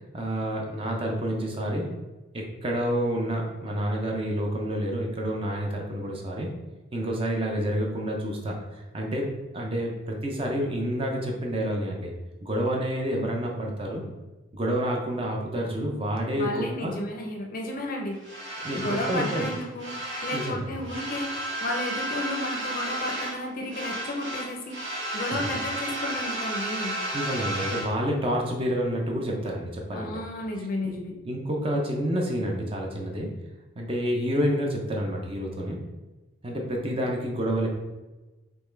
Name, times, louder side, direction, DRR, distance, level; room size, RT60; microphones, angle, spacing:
voice 1, 0.1-1.9 2.3-6.5 6.9-12.1 12.4-14.0 14.5-17.0 18.6-19.5 20.3-20.7 25.3-25.5 27.1-30.1 31.2-33.3 33.8-35.8 36.4-37.7, equal, 25° right, 0 dB, 0.5 m, -29 dB
voice 2, 16.4-18.2 18.7-19.9 20.2-27.0 29.9-31.1, left 1 dB, 40° left, 1 dB, 0.5 m, -33 dB
sound 1, 18.2-20.6 20.8-23.4 23.7-27.9, right 1 dB, 55° right, 1.1 m, -33 dB
3.5 x 3.0 x 3.2 m, 1.1 s
head